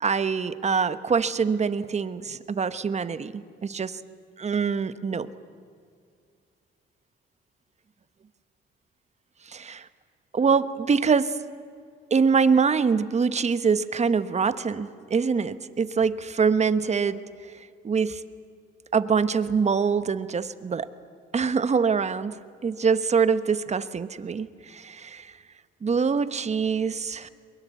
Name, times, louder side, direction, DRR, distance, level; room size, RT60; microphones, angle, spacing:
voice 1, 0.0-4.0 4.4-5.3 9.5-9.9 10.3-11.4 12.1-17.2 17.8-18.2 18.9-20.9 21.3-22.4 22.6-25.3 25.8-27.3, right 5 dB, 35° right, 13 dB, 1.0 m, -24 dB
22.5 x 21.0 x 8.3 m, 2.3 s
cardioid pair, 90°, 20 cm